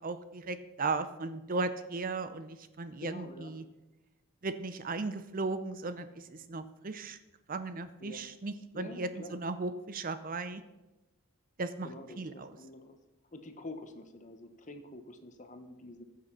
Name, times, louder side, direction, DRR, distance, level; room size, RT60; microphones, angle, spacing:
voice 1, 0.0-3.6 4.4-7.2 7.5-10.6 11.6-11.9 12.2-12.5, right 3 dB, 40° right, 12 dB, 0.6 m, -36 dB
voice 2, 3.0-3.5 8.0-8.2 8.7-9.4 11.8-13.0 13.3-16.0, left 1 dB, 35° left, 7 dB, 1.1 m, -47 dB
14.5 x 6.6 x 5.8 m, 1.0 s
head